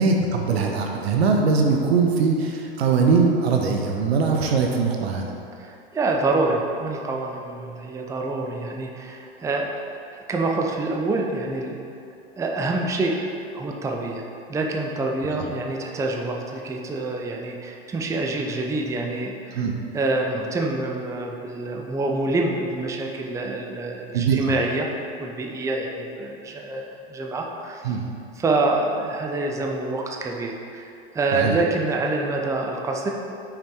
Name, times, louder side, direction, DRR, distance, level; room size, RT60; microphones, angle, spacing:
voice 1, 0.0-5.3 19.6-19.7 24.1-24.5 27.8-28.0 31.3-31.5, right 4 dB, 75° right, 2 dB, 0.9 m, -21 dB
voice 2, 5.6-9.8 10.1-11.8 12.4-13.3 13.5-14.2 14.5-19.7 19.9-24.9 25.2-28.0 28.4-33.1, right 2 dB, 10° right, 1 dB, 0.5 m, -26 dB
5.9 x 5.1 x 4.6 m, 2.6 s
hypercardioid pair, 100°, 31 cm